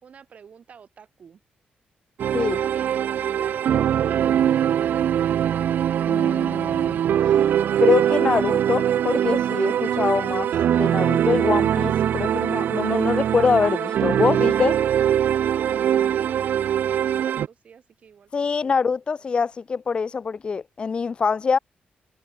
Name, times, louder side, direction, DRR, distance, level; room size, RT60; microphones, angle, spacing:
voice 1, 0.0-1.4 2.4-5.0 15.4-18.9, right 7 dB, 45° right, 3.9 m, -49 dB
sound 1, 2.2-17.5, right 10 dB, 70° right, 0.7 m, -22 dB
voice 2, 6.1-7.0 7.8-14.8 18.3-21.6, left 5 dB, 30° left, 0.7 m, -24 dB
wide cardioid pair, 160°, 3 cm